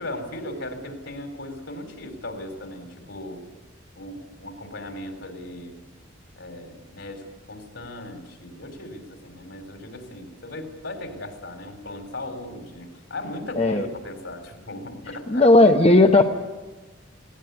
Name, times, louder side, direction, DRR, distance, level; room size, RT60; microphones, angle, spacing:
voice 1, 0.0-3.4 4.0-5.8 6.4-15.4, left 1 dB, 65° left, 6 dB, 4.0 m, -37 dB
voice 2, 15.3-16.2, left 2 dB, 30° left, 4 dB, 0.9 m, -15 dB
20.0 x 18.0 x 9.6 m, 1.2 s
head